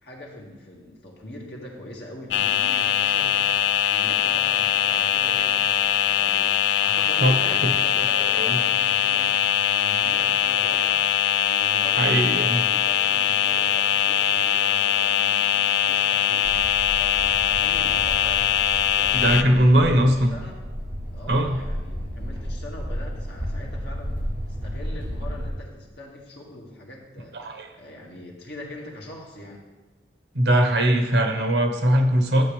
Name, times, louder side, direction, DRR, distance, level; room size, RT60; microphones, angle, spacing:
voice 1, 0.0-3.6 3.9-11.1 11.5-20.0 20.3-20.5 21.1-24.2 24.5-29.6, left 1 dB, 75° left, -2 dB, 2.0 m, -42 dB
sound 1, 2.3-19.4, left 10 dB, 90° left, 0.4 m, -22 dB
voice 2, 7.2-7.7 8.2-8.6 12.0-12.6 19.1-20.4 21.3-21.6 27.3-27.7 30.3-32.5, right 1 dB, 75° right, 4 dB, 1.1 m, -20 dB
sound 2, 16.4-25.5, equal, 15° right, 2.7 m, -33 dB
12.0 x 7.7 x 3.3 m, 1.2 s
head